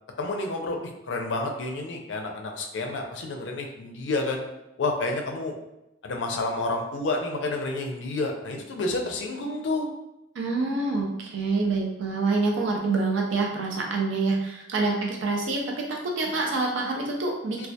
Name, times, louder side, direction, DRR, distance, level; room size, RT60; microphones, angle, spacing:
voice 1, 0.2-4.4 4.8-5.5 6.0-9.9 17.6-17.7, left 2 dB, 70° left, 2 dB, 0.4 m, -29 dB
voice 2, 10.4-17.7, right 3 dB, 80° right, 0 dB, 0.4 m, -26 dB
2.2 x 2.1 x 2.6 m, 0.89 s
head